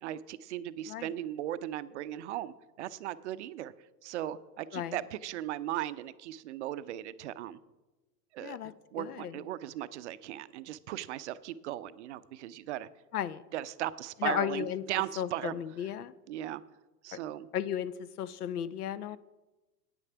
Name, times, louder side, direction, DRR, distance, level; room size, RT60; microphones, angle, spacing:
voice 1, 0.0-3.7 4.0-7.6 8.3-8.6 8.9-12.9 13.5-15.5 16.3-16.6 17.0-17.5, right 13 dB, 45° right, 16 dB, 0.5 m, -37 dB
voice 2, 8.4-8.7 9.0-9.3 13.1-13.4 14.2-14.8 15.2-16.1 17.1-17.2 17.5-17.9 18.2-19.2, left 10 dB, 65° left, 18 dB, 0.6 m, -34 dB
9.7 x 9.0 x 5.7 m, 1.1 s
figure-of-eight pair, 90°, 50 cm